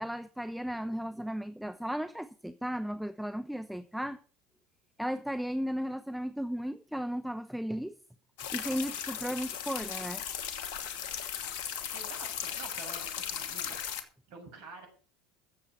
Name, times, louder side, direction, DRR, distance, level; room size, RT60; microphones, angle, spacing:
voice 1, 0.0-4.2 5.0-8.0 8.5-10.2, equal, ahead, 0.8 m, -35 dB
sound 1, 8.4-14.0, left 8 dB, 65° left, 1.7 m, -37 dB
voice 2, 11.9-13.8 14.3-14.9, right 4 dB, 60° right, 6.6 m, -48 dB
14.5 x 7.5 x 6.0 m
hypercardioid pair, 75°, 0 cm